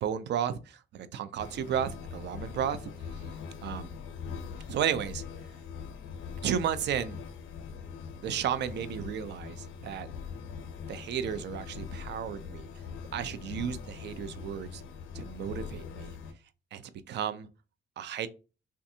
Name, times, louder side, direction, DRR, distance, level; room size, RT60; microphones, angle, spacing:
voice 1, 0.0-2.8 3.1-3.2 3.6-3.9 4.7-5.2 6.4-7.2 8.2-10.1 10.9-12.7 13.1-14.8 15.1-16.2 16.7-17.5 18.0-18.3, right 9 dB, 60° right, 12 dB, 0.4 m, -33 dB
sound 1, 1.4-16.3, left 6 dB, 90° left, 0.6 m, -42 dB
3.3 x 2.5 x 2.6 m, 0.32 s
cardioid pair, 90°, 20 cm